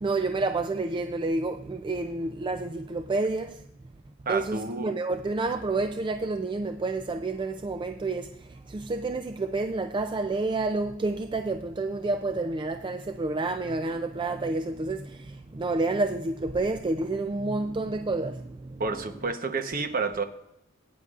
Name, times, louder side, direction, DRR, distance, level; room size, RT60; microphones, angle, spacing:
voice 1, 0.0-3.6 4.3-18.8, right 3 dB, 25° right, 0.4 m, -29 dB
voice 2, 4.3-4.9 18.8-20.2, right 4 dB, 45° right, 1.0 m, -30 dB
17.5 x 9.5 x 2.4 m
head